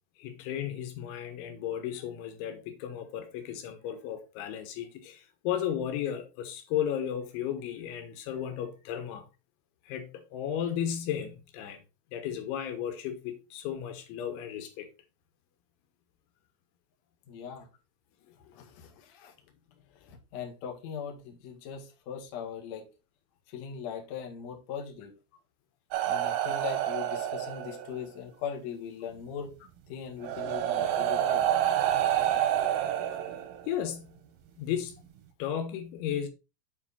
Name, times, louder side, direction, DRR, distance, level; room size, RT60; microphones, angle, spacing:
voice 1, 0.2-9.3 9.9-11.8 12.1-14.9 18.8-18.9 33.7-34.2 34.6-35.0 35.4-36.3, left 9 dB, 75° left, 3.3 m, -34 dB
voice 2, 17.3-17.7 18.5-19.3 19.9-22.9 23.5-25.1 26.1-29.5 29.9-31.5, left 7 dB, 60° left, 1.8 m, -40 dB
sound 1, 25.9-28.1 29.4-29.5 30.2-33.8 34.9-35.1, right 11 dB, 90° right, 3.9 m, -28 dB
7.9 x 4.9 x 4.2 m
omnidirectional pair, 5.7 m